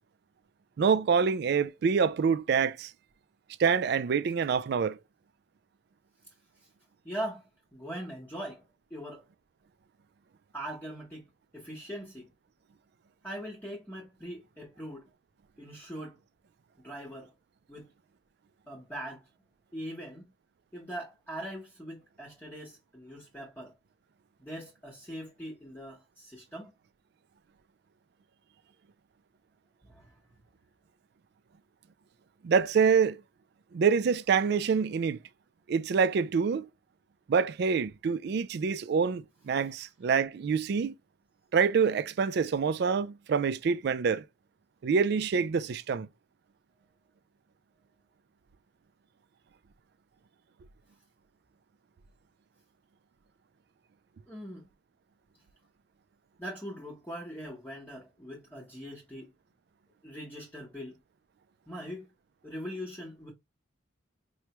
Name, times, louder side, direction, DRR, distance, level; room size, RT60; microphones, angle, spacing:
voice 1, 0.8-2.9 3.6-5.0 32.4-33.2 33.7-35.2 35.7-36.7 37.3-40.9 41.5-44.2 44.8-46.1, right 6 dB, 55° right, 0.3 m, -26 dB
voice 2, 7.0-8.6 8.9-9.3 10.5-12.3 13.2-15.1 15.6-16.2 16.8-17.3 17.7-17.9 18.7-19.3 19.7-20.3 20.7-23.7 24.4-26.7 29.9-30.1 54.3-54.7 56.4-59.3 60.0-61.0 61.7-62.1 62.4-63.3, equal, 10° left, 0.9 m, -41 dB
4.7 x 2.1 x 2.9 m
head